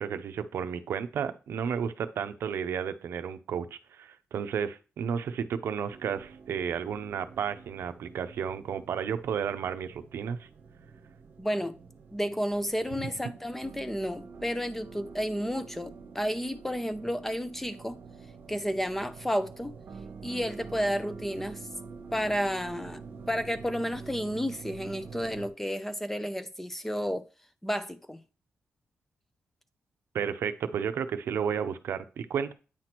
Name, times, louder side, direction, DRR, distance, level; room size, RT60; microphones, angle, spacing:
voice 1, 0.0-10.5 30.1-32.5, right 7 dB, 70° right, 0.6 m, -32 dB
sound 1, 5.9-25.5, right 4 dB, 50° right, 0.9 m, -47 dB
voice 2, 11.4-11.8 12.1-18.0 18.5-19.7 20.2-21.7 22.1-23.0 23.3-27.2 27.6-28.2, equal, 5° left, 0.4 m, -31 dB
8.7 x 3.0 x 5.9 m
wide cardioid pair, 165°, 4 cm